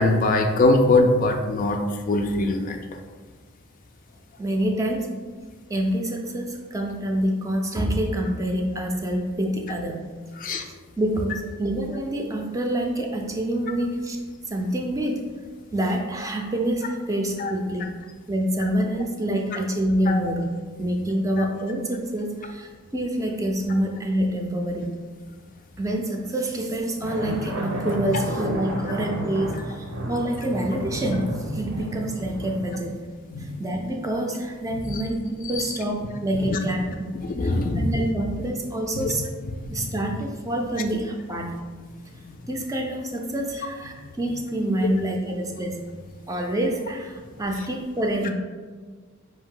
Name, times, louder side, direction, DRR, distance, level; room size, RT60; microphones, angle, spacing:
voice 1, 0.0-1.8 2.1-2.8 10.4-10.6 17.4-17.5 20.1-20.2 21.4-21.5 33.3-33.5 34.7-35.0 35.6-35.7 36.5-36.6 37.2-37.9 39.0-39.1 39.6-39.9, left 2 dB, 40° left, 5 dB, 0.3 m, -22 dB
voice 2, 4.4-5.1 5.7-10.0 11.0-15.2 15.7-17.9 18.3-20.5 20.8-24.9 25.8-33.0 33.4-37.1 37.4-39.2 39.7-41.6 42.5-45.8 46.3-48.3, right 1 dB, 15° right, 2 dB, 0.5 m, -27 dB
sound 1, 27.0-32.7, right 1 dB, 80° right, 0.7 m, -31 dB
5.1 x 2.7 x 3.7 m, 1.5 s
head